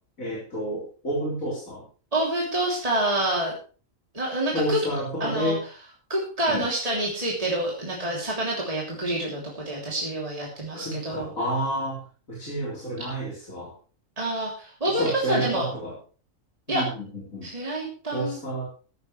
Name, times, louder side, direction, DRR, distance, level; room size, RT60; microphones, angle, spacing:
voice 1, 0.2-1.8 4.5-5.6 6.5-6.7 10.7-12.0 12.3-13.7 14.9-16.0 16.7-17.5 18.1-18.7, right 1 dB, 80° left, -4 dB, 4.8 m, -30 dB
voice 2, 2.1-3.5 4.1-4.8 5.2-5.5 6.1-11.3 14.2-15.6 16.7-16.8 17.4-18.4, right 1 dB, 25° right, -3 dB, 3.2 m, -27 dB
15.0 x 13.0 x 3.2 m, 0.38 s
omnidirectional pair, 1.4 m